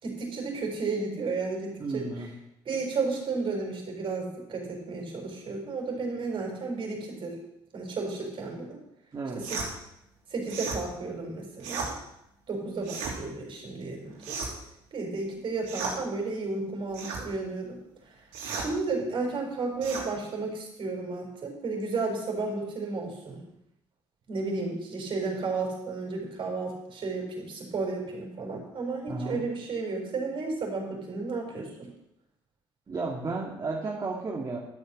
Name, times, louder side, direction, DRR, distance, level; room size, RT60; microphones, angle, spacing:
voice 1, 0.0-2.0 2.7-7.4 7.7-8.8 9.5-9.6 10.3-11.9 12.5-14.4 14.9-17.8 18.5-23.4 24.3-31.9, right 3 dB, 50° right, 1 dB, 4.8 m, -33 dB
voice 2, 1.8-2.3 9.1-9.4 29.1-29.4 32.9-34.6, right 3 dB, 35° right, -3 dB, 2.2 m, -33 dB
sound 1, 9.4-9.7 10.5-10.8 11.6-11.9 12.8-13.2 14.2-14.7 15.6-16.0 16.9-17.2 18.3-18.7 19.8-20.1, right 5 dB, 85° right, 3.2 m, -34 dB
12.5 x 7.1 x 6.4 m, 0.81 s
supercardioid pair, 70°, 11 cm